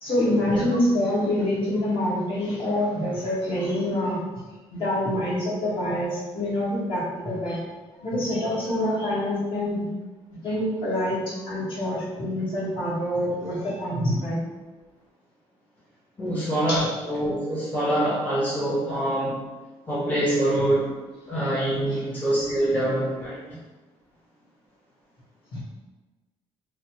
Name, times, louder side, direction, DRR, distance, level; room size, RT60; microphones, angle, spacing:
voice 1, 0.0-4.2 4.7-7.6 8.0-9.9 10.3-14.4 16.7-16.9 21.9-22.0 25.5-25.6, left 1 dB, 50° left, -8 dB, 1.4 m, -26 dB
voice 2, 16.2-19.4 19.9-20.9 21.3-23.4, right 1 dB, 15° left, -8 dB, 0.7 m, -25 dB
3.0 x 2.0 x 2.9 m, 1.2 s
cardioid pair, 115°, 11 cm